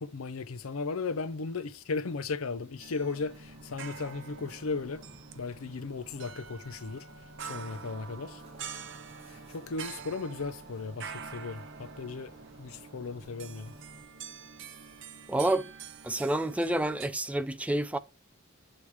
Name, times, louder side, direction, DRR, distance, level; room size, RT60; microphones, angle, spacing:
voice 1, 0.0-5.0 5.4-7.1 7.4-8.4 9.3-13.7, left 4 dB, 80° left, 0.6 m, -36 dB
sound 1, 2.8-17.1, right 7 dB, 60° right, 0.8 m, -46 dB
sound 2, 3.0-14.1, equal, 30° right, 1.5 m, -53 dB
voice 2, 15.3-15.7 16.0-18.0, right 1 dB, 5° right, 0.4 m, -28 dB
8.6 x 3.3 x 4.7 m
head